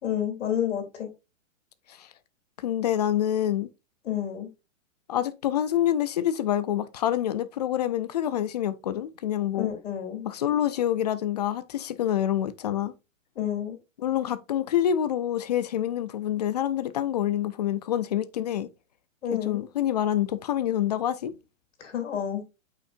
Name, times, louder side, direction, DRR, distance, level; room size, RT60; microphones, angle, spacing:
voice 1, 0.0-1.1 4.0-4.5 9.5-10.3 13.3-13.8 19.2-19.6 21.8-22.4, left 9 dB, 65° left, 3.2 m, -30 dB
voice 2, 2.6-3.7 5.1-9.7 10.2-12.9 14.0-18.7 19.3-21.3, left 11 dB, 30° left, 0.5 m, -27 dB
7.8 x 5.7 x 2.5 m
hypercardioid pair, 155°, 39 cm